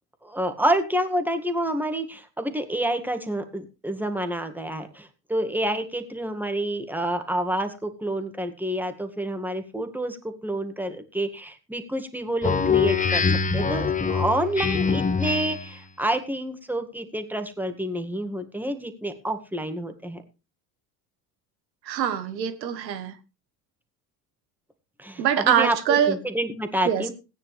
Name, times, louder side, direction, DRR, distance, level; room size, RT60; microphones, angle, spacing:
voice 1, 0.2-13.2 13.5-20.2 25.0-27.1, right 1 dB, 5° right, 8 dB, 2.0 m, -28 dB
Speech synthesizer, 12.4-15.8, left 5 dB, 15° left, 1.0 m, -24 dB
voice 2, 21.9-23.1 25.2-26.2 26.9-27.0, right 9 dB, 80° right, 11 dB, 1.5 m, -23 dB
17.0 x 9.5 x 3.4 m, 0.30 s
hypercardioid pair, 70°, 50 cm